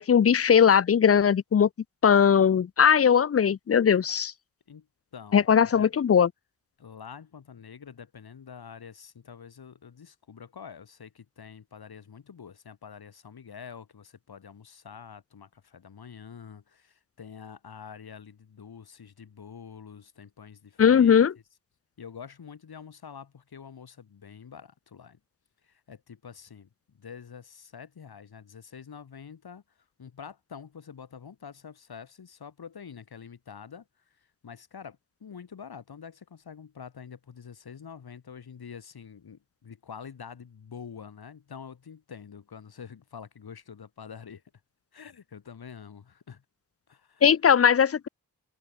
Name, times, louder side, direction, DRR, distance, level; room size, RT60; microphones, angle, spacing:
voice 1, 0.0-1.7 2.0-4.3 5.3-6.3 20.8-21.3 47.2-48.1, left 7 dB, 40° left, 0.5 m, -19 dB
voice 2, 5.1-5.9 6.8-21.2 22.0-25.2 25.6-26.7 26.9-29.6 30.0-44.4 44.9-46.4 46.9-47.2, left 7 dB, 80° left, 4.7 m, -46 dB
cardioid pair, 60°, 37 cm